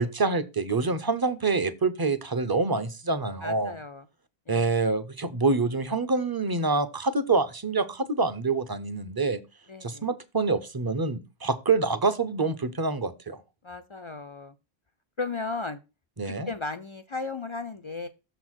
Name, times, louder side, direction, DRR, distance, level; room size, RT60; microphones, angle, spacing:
voice 1, 0.0-3.7 4.5-9.4 9.8-13.4 16.2-16.5, right 3 dB, 25° right, 12 dB, 0.5 m, -26 dB
voice 2, 3.4-4.0 4.5-4.7 9.7-10.1 13.6-14.5 15.2-15.8 16.2-18.1, left 3 dB, 50° left, 9 dB, 0.3 m, -35 dB
6.8 x 4.0 x 6.2 m, 0.28 s
omnidirectional pair, 1.1 m